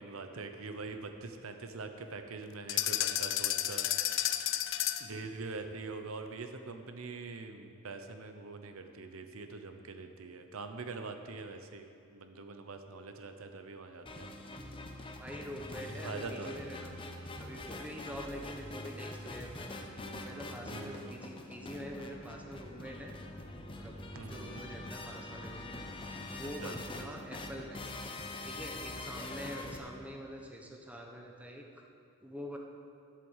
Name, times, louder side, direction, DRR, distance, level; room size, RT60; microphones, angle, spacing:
voice 1, 0.0-14.3 15.8-16.6 18.3-18.4 20.7-21.2 24.1-24.6 26.4-26.8, right 3 dB, 70° right, 7 dB, 0.8 m, -44 dB
sound 1, 2.7-5.2, left 12 dB, 60° left, 0.5 m, -31 dB
sound 2, 14.1-29.8, left 2 dB, 25° left, 0.8 m, -44 dB
voice 2, 15.2-16.9 17.4-19.7 20.1-23.1 23.7-25.9 26.3-27.8 28.4-31.7 32.2-32.6, equal, 5° right, 0 dB, 1.0 m, -45 dB
11.0 x 8.0 x 7.3 m, 2.5 s
head